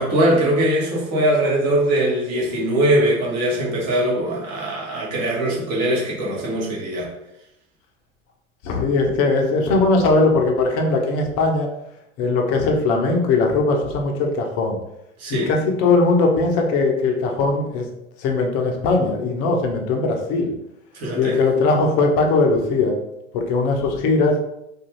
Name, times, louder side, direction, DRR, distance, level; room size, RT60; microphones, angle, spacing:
voice 1, 0.0-7.1 15.2-15.5 20.9-21.4, right 1 dB, 35° right, -4 dB, 1.0 m, -21 dB
voice 2, 8.6-11.7 12.2-14.8 15.3-17.8 18.2-20.5 21.1-23.0 23.3-24.4, left 3 dB, 35° left, 2 dB, 0.6 m, -19 dB
2.5 x 2.3 x 3.0 m, 0.85 s
hypercardioid pair, 95°, 43 cm